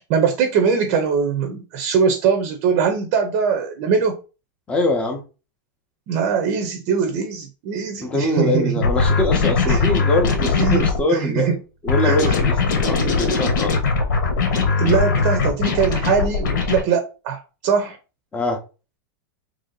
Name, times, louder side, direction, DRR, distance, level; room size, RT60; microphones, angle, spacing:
voice 1, 0.1-4.2 6.1-8.7 9.7-9.9 10.6-11.5 12.0-12.3 14.8-18.0, right 6 dB, 40° right, 0.6 m, -21 dB
voice 2, 4.7-5.2 8.0-11.5 11.8-13.7 18.3-18.6, left 2 dB, 10° left, 0.7 m, -23 dB
sound 1, 8.8-11.0 11.9-16.8, left 4 dB, 70° left, 1.2 m, -20 dB
3.1 x 2.7 x 3.9 m
supercardioid pair, 165°, 11 cm